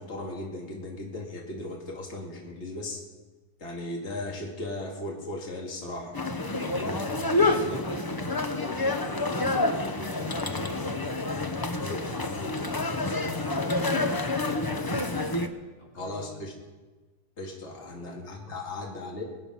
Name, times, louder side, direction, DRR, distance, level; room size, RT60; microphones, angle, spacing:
voice 1, 0.0-3.0 3.6-6.2 6.8-7.1 7.6-7.8 11.8-12.0 16.0-16.5 17.4-19.2, left 2 dB, 45° left, -1 dB, 2.5 m, -37 dB
sound 1, 6.1-15.5, left 2 dB, 25° left, 0.4 m, -28 dB
voice 2, 6.4-7.0 7.5-11.3 11.8-15.5 15.8-16.4 17.8-18.6, left 2 dB, 90° left, -3 dB, 3.8 m, -44 dB
22.5 x 9.0 x 5.6 m, 1.3 s
omnidirectional pair, 1.7 m